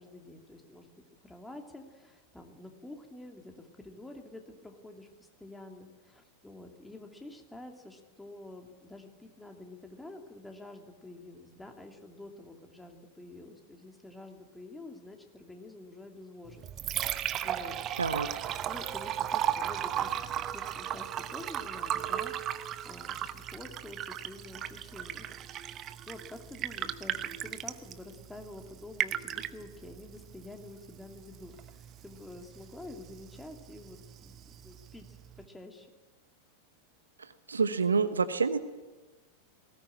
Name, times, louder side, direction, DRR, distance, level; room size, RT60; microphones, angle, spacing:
voice 1, 0.0-17.7 18.7-35.9, left 2 dB, 5° left, 3 dB, 2.8 m, -48 dB
Liquid, 16.4-35.5, right 11 dB, 30° right, 1.0 m, -37 dB
voice 2, 18.0-18.3 37.2-38.6, right 5 dB, 75° right, 11 dB, 1.1 m, -28 dB
20.0 x 18.0 x 8.9 m, 1.2 s
figure-of-eight pair, 90°, 0 cm